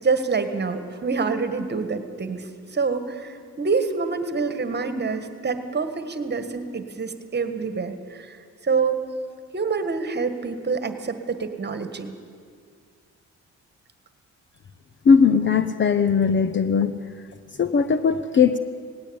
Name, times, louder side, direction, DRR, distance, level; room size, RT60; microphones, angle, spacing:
voice 1, 0.0-8.4 8.6-9.0 9.5-12.1, right 4 dB, 35° right, 9 dB, 1.7 m, -26 dB
voice 2, 15.1-16.9 17.6-18.6, left 6 dB, 40° left, 11 dB, 0.8 m, -19 dB
18.5 x 17.0 x 8.8 m, 2.1 s
cardioid pair, 90°, 30 cm